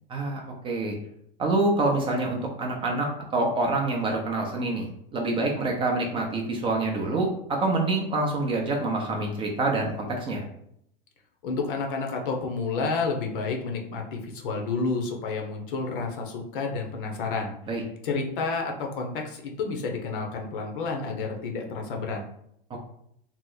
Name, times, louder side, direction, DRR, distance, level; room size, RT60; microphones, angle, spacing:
voice 1, 0.1-1.0 1.4-4.9 5.1-10.4 17.7-17.8, right 2 dB, 20° right, 0 dB, 0.5 m, -26 dB
voice 2, 11.4-17.5 18.0-22.2, left 4 dB, 65° left, 2 dB, 0.8 m, -30 dB
2.9 x 2.0 x 3.8 m, 0.72 s
hypercardioid pair, 130°, 29 cm